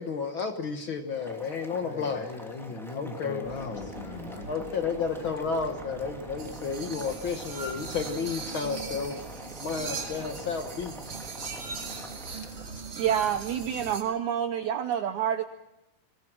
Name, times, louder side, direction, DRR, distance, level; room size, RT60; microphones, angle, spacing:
voice 1, 0.0-2.3 2.9-3.4 4.5-9.2 9.6-11.1, left 5 dB, 80° left, 6 dB, 1.1 m, -32 dB
Boiling, 1.1-12.6, equal, ahead, 2.1 m, -46 dB
voice 2, 1.8-4.5 12.3-13.0, left 4 dB, 45° left, 7 dB, 1.8 m, -40 dB
sound 1, 3.4-13.9, right 3 dB, 50° right, 0.8 m, -45 dB
sound 2, 6.4-14.0, right 4 dB, 35° right, 3.1 m, -40 dB
voice 3, 13.0-15.4, right 9 dB, 70° right, 9 dB, 1.8 m, -28 dB
24.0 x 19.5 x 6.1 m, 0.92 s
omnidirectional pair, 4.3 m